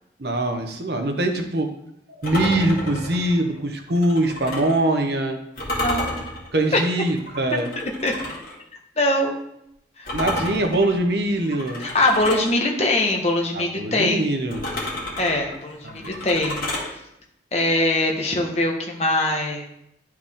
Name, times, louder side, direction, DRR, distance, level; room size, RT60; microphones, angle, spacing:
voice 1, 0.2-1.7 2.1-5.4 6.5-7.7 10.1-11.9 13.5-14.6 15.8-16.1, right 1 dB, 60° right, 5 dB, 0.9 m, -23 dB
sound 1, 2.2-4.8 5.6-8.6 10.1-12.5 14.5-16.9, left 1 dB, 50° left, 2.3 m, -31 dB
voice 2, 5.7-6.2 6.7-6.8 8.0-8.1 9.0-9.4 10.0-10.1 11.8-14.2 15.2-16.6 17.5-19.7, left 2 dB, 35° left, 1 dB, 1.2 m, -22 dB
11.5 x 4.7 x 3.7 m, 0.78 s
head